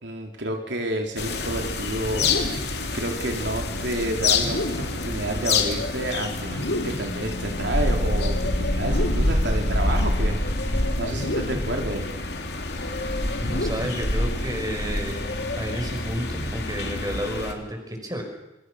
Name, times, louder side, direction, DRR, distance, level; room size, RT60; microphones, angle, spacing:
voice 1, 0.0-12.0, right 1 dB, 70° right, 2 dB, 3.6 m, -30 dB
sound 1, 1.2-17.5, left 2 dB, 60° left, 3.4 m, -26 dB
sound 2, 2.1-2.8 4.3-5.1 6.4-7.2 8.7-9.4 11.1-11.8 13.3-14.1, left 1 dB, 80° left, 3.3 m, -31 dB
voice 2, 13.4-15.2 15.5-18.2, equal, 20° right, 3 dB, 5.7 m, -31 dB
27.5 x 27.0 x 6.5 m, 0.96 s
head